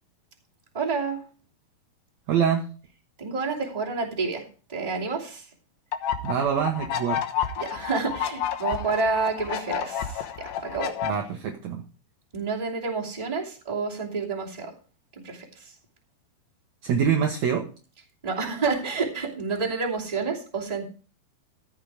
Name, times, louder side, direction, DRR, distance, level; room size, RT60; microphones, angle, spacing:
voice 1, 0.7-1.2 3.2-5.4 7.6-11.0 12.3-14.7 15.2-15.7 18.2-20.9, right 4 dB, 10° right, -3 dB, 2.2 m, -29 dB
voice 2, 2.3-2.6 6.2-7.2 11.0-11.8 16.8-17.7, right 7 dB, 75° right, 3 dB, 1.6 m, -25 dB
sound 1, 5.9-11.1, left 9 dB, 70° left, 2.7 m, -30 dB
14.5 x 6.5 x 4.9 m, 0.37 s
omnidirectional pair, 4.6 m